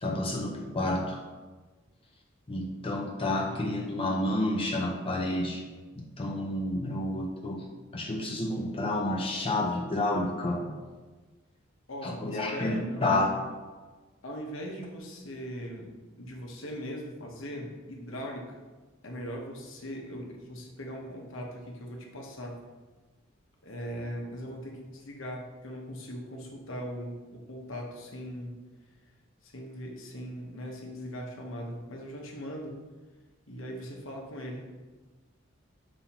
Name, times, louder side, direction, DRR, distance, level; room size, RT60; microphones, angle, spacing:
voice 1, 0.0-1.2 2.5-5.7 6.0-7.7 7.9-10.7 12.0-13.4, left 1 dB, 30° left, 0 dB, 0.6 m, -30 dB
voice 2, 3.3-3.8 11.9-13.1 14.2-18.6 19.0-22.6 23.6-28.6 29.4-32.8 33.5-34.6, equal, 90° left, 0 dB, 1.1 m, -40 dB
7.1 x 5.3 x 2.9 m, 1.3 s
head